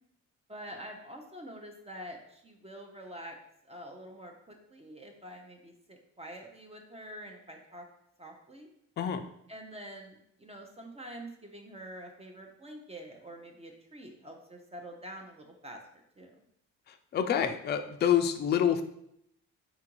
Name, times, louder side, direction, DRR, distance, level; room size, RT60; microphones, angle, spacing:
voice 1, 0.5-3.4 3.6-7.8 8.2-8.7 9.5-16.4, equal, 20° right, 2 dB, 0.6 m, -46 dB
voice 2, 9.0-9.3 16.9-18.8, left 9 dB, 35° left, 7 dB, 0.4 m, -27 dB
3.8 x 2.4 x 4.5 m, 0.75 s
cardioid pair, 90°, 30 cm